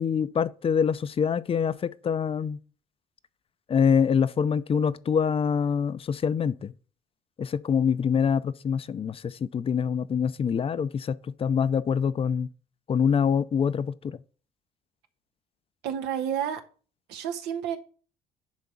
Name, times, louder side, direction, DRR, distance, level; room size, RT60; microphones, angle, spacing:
voice 1, 0.0-2.6 3.7-6.7 7.4-12.5 12.9-14.2, left 7 dB, 35° left, 0.5 m, -25 dB
voice 2, 15.8-16.6 17.1-17.8, right 9 dB, 85° right, 1.4 m, -30 dB
10.5 x 3.6 x 7.0 m
cardioid pair, 110°, 17 cm